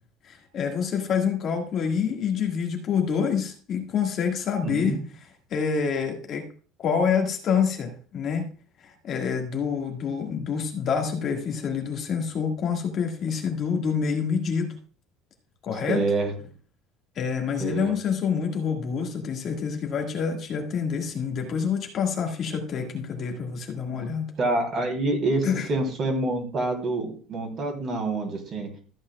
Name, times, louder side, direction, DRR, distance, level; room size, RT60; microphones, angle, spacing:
voice 1, 0.2-5.0 5.5-6.5 6.8-8.5 8.8-14.8 15.6-16.0 17.2-24.3 25.4-25.7, left 6 dB, 35° left, 2 dB, 1.8 m, -27 dB
voice 2, 4.6-5.0 15.9-16.3 17.6-17.9 24.4-28.7, right 2 dB, 35° right, 4 dB, 3.2 m, -27 dB
14.0 x 8.6 x 2.3 m, 0.41 s
cardioid pair, 165°, 0 cm